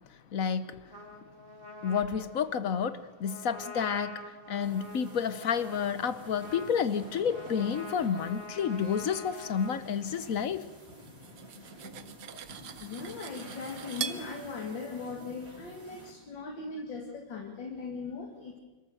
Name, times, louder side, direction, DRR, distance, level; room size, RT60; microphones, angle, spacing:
voice 1, 0.3-0.8 1.8-10.6, left 7 dB, 55° left, 14 dB, 1.1 m, -30 dB
Trumpet, 0.9-9.8, left 2 dB, 30° right, 2.6 m, -46 dB
sound 1, 4.6-16.1, right 1 dB, 45° right, 4.3 m, -50 dB
Cutlery silverware, 11.1-14.3, right 8 dB, 70° right, 1.5 m, -41 dB
voice 2, 12.8-18.5, left 4 dB, 80° left, 1 dB, 2.8 m, -39 dB
26.0 x 14.0 x 7.9 m, 1.2 s
omnidirectional pair, 2.0 m